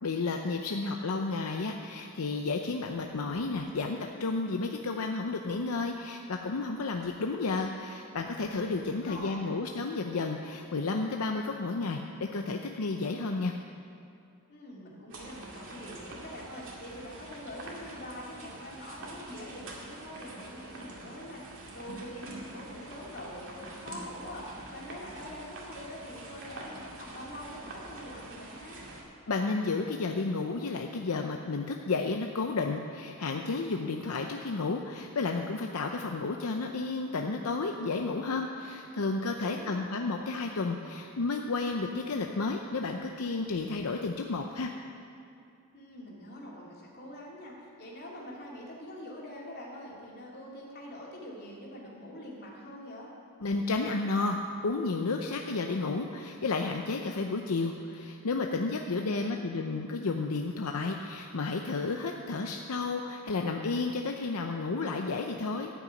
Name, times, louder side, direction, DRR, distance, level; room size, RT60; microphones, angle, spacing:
voice 1, 0.0-13.6 29.3-44.7 53.4-65.7, left 3 dB, 80° left, 3 dB, 0.6 m, -32 dB
voice 2, 8.7-9.6 14.5-28.8 39.4-39.9 45.7-53.1 58.7-59.5, left 1 dB, 50° left, -4 dB, 2.8 m, -44 dB
sound 1, 15.1-29.0, right 2 dB, 65° right, 2.1 m, -45 dB
13.0 x 6.2 x 8.8 m, 2.5 s
head